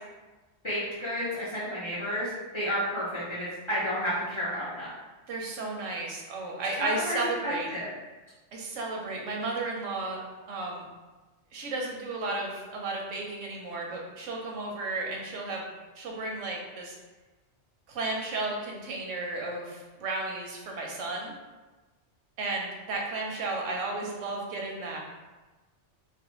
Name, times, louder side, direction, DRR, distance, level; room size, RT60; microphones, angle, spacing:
voice 1, 0.6-4.9 6.8-7.9, equal, 40° left, -9 dB, 0.4 m, -31 dB
voice 2, 5.3-7.7 8.5-10.2 10.5-10.9 11.5-15.6 15.9-17.0 17.9-21.3 22.4-25.0, right 2 dB, 90° right, 0 dB, 0.9 m, -33 dB
2.4 x 2.1 x 2.9 m, 1.2 s
omnidirectional pair, 1.2 m